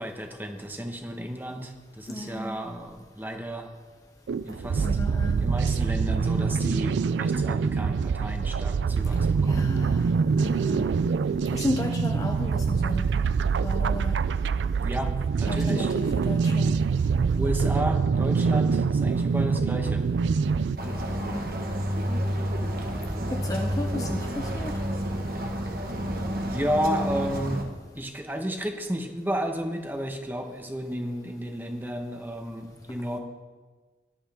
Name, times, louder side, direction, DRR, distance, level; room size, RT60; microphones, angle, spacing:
voice 1, 0.0-3.7 4.4-4.9 5.4-9.7 14.8-15.9 17.3-20.0 26.5-27.6 27.9-33.2, equal, 10° right, 4 dB, 1.1 m, -32 dB
voice 2, 2.1-2.6 4.8-5.6 9.5-10.1 10.4-10.9 11.5-13.3 13.6-14.2 15.5-16.8 21.2-21.6 23.3-24.8, left 1 dB, 20° left, 3 dB, 0.7 m, -34 dB
sound 1, 4.3-20.8, right 5 dB, 90° right, 0.4 m, -25 dB
sound 2, 20.8-27.6, equal, 55° right, 1.5 m, -30 dB
17.0 x 11.0 x 3.6 m, 1.4 s
head